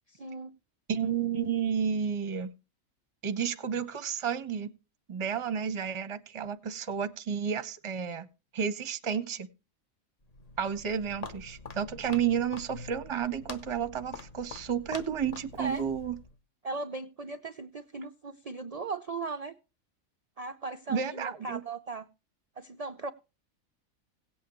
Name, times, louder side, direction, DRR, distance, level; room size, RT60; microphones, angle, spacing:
voice 1, 0.1-0.5 15.6-15.8 16.6-19.5 20.4-22.1 22.6-23.1, right 3 dB, 60° right, 7 dB, 0.4 m, -37 dB
voice 2, 0.9-2.5 3.2-4.7 5.1-8.3 8.5-9.5 10.6-16.2 20.9-21.6, right 7 dB, 25° right, 11 dB, 0.7 m, -31 dB
Walk footsteps, 10.2-16.4, left 4 dB, 35° left, 0.8 m, -45 dB
17.0 x 8.5 x 3.0 m, 0.29 s
omnidirectional pair, 1.5 m